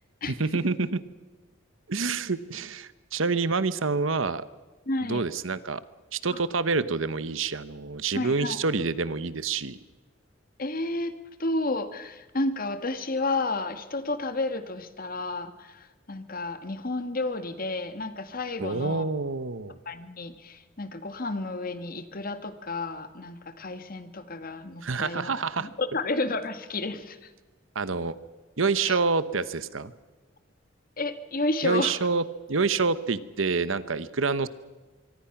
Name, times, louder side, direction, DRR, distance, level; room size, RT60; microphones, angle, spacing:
voice 1, 0.3-1.0 1.9-4.4 5.1-5.8 6.1-9.8 18.6-19.8 24.8-25.7 27.7-28.1 28.6-29.9 31.6-34.5, right 4 dB, 85° right, 15 dB, 1.1 m, -27 dB
voice 2, 4.9-5.2 6.3-6.4 8.1-8.6 10.6-11.1 11.4-19.1 19.8-27.3 28.8-29.0 31.0-31.9, left 2 dB, 45° left, 10 dB, 1.6 m, -31 dB
24.5 x 24.0 x 6.0 m, 1.2 s
head